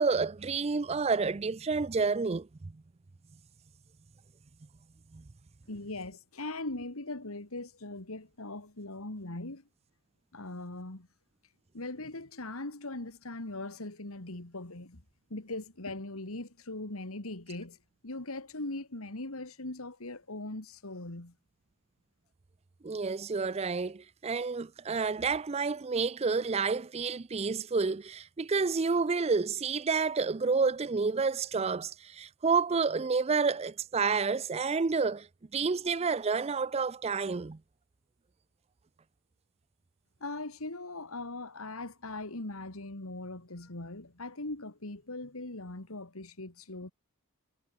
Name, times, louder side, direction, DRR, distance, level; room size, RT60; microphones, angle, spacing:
voice 1, 0.0-2.7 5.1-5.2 22.8-35.3 35.5-37.6, right 4 dB, 30° right, 0.4 m, -29 dB
voice 2, 5.7-9.6 10.3-11.1 11.7-15.0 15.3-17.8 18.0-21.3 40.2-46.9, left 2 dB, 75° left, 2.5 m, -40 dB
head